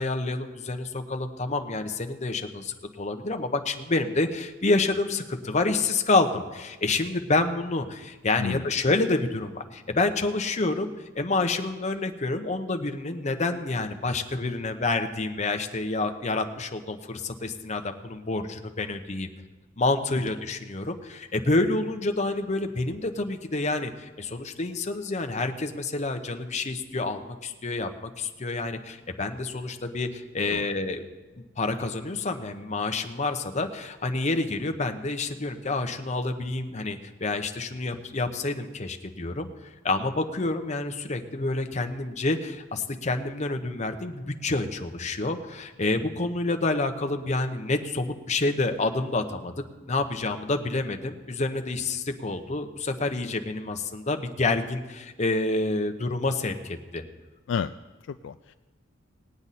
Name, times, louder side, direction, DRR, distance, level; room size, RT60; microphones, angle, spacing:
voice 1, 0.0-19.3 19.8-31.0 31.6-49.5 49.9-57.0, left 2 dB, 35° left, 6 dB, 0.8 m, -28 dB
voice 2, 8.4-8.7 30.5-30.7 57.5-57.8 58.0-58.5, left 6 dB, 65° left, 10 dB, 0.3 m, -31 dB
19.5 x 8.8 x 4.1 m, 1.2 s
head